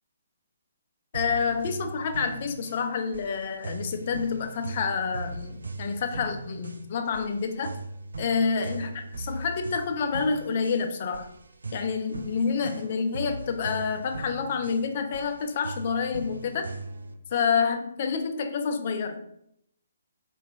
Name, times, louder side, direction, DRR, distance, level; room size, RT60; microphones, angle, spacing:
voice 1, 1.1-7.8 8.2-11.3 11.7-16.7 17.3-19.2, left 5 dB, 45° left, 7 dB, 0.4 m, -28 dB
sound 1, 1.1-17.2, right 3 dB, 70° right, 0.3 m, -39 dB
4.1 x 2.3 x 2.6 m, 0.74 s
figure-of-eight pair, 135°, 0 cm